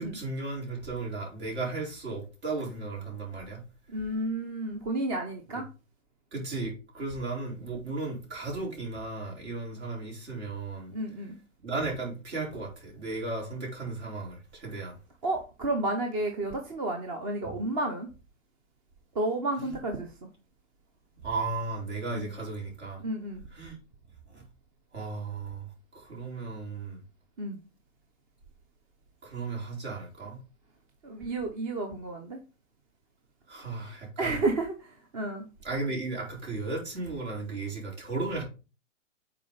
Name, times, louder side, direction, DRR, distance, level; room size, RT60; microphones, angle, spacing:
voice 1, 0.0-3.6 6.3-10.9 11.6-15.0 17.4-17.5 19.6-19.7 21.2-23.0 23.5-23.8 24.3-24.4 24.9-27.0 29.2-30.4 33.5-34.4 35.6-38.4, right 3 dB, 55° right, 4.5 m, -35 dB
voice 2, 3.9-5.7 10.9-11.4 15.2-18.1 19.1-20.3 22.1-22.3 23.0-23.4 27.4-27.6 31.0-32.4 34.2-35.5, right 2 dB, 25° right, 0.9 m, -31 dB
7.3 x 4.3 x 4.0 m
hypercardioid pair, 150°, 39 cm